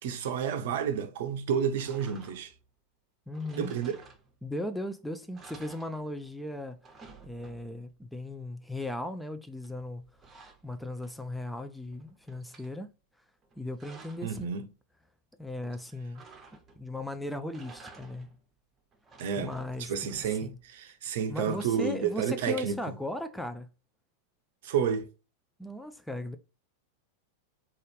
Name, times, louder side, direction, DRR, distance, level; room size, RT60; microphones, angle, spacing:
voice 1, 0.0-2.5 3.6-4.0 14.2-14.7 19.2-22.8 24.6-25.1, right 7 dB, 55° right, 0.6 m, -30 dB
sound 1, 1.8-2.6 3.3-4.6 5.0-5.1 5.3-6.4 6.7-7.9 9.6-11.4 11.8-12.7 13.4-14.4 16.1-16.9 17.4-18.4 18.9-20.7, right 4 dB, 20° right, 0.8 m, -53 dB
voice 2, 3.3-3.7 4.4-6.8 7.2-10.0 10.6-12.9 13.6-14.5 15.4-16.2 16.8-18.3 19.4-20.6 21.3-23.7 25.6-26.4, left 1 dB, ahead, 0.4 m, -37 dB
4.0 x 2.4 x 3.2 m
figure-of-eight pair, 90°, 0 cm